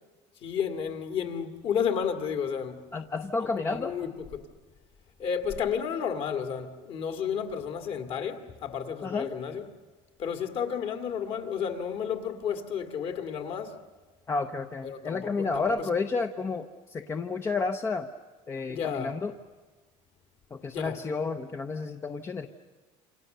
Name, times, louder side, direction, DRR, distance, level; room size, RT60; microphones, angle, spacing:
voice 1, 0.4-2.8 3.4-4.4 5.2-9.6 10.2-13.8 14.8-15.8 18.7-19.1 20.7-21.0, left 7 dB, 45° left, 2.1 m, -32 dB
voice 2, 2.9-4.0 9.0-9.3 14.3-18.1 18.5-19.3 20.5-22.5, left 4 dB, 20° left, 0.7 m, -31 dB
28.0 x 27.0 x 6.7 m
cardioid pair, 165°, 13 cm